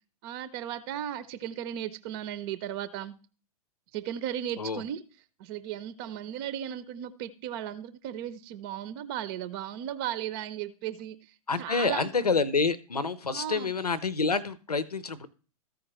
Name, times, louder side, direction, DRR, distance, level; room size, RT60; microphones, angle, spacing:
voice 1, 0.2-3.1 3.9-5.0 5.4-12.1 13.3-13.7, right 10 dB, 40° right, 15 dB, 0.6 m, -36 dB
voice 2, 11.5-15.3, left 4 dB, 85° left, 16 dB, 0.7 m, -28 dB
14.5 x 5.0 x 3.0 m, 0.37 s
figure-of-eight pair, 105°, 19 cm